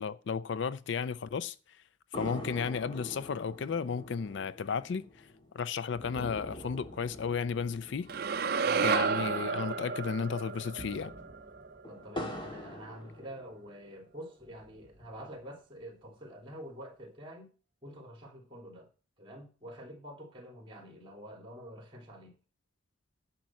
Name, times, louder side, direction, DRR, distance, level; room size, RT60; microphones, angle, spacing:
voice 1, 0.0-1.6 2.1-5.3 5.5-8.1 8.8-11.1, left 6 dB, 60° left, 0.4 m, -33 dB
sound 1, 2.1-9.7 10.0-10.1 10.5-13.9 14.4-15.4, left 1 dB, 25° left, 1.8 m, -45 dB
sound 2, 8.1-12.3, right 5 dB, 50° right, 0.5 m, -32 dB
voice 2, 11.9-17.5 17.8-18.9 19.2-22.3, equal, 25° right, 3.3 m, -47 dB
10.5 x 5.7 x 7.5 m
head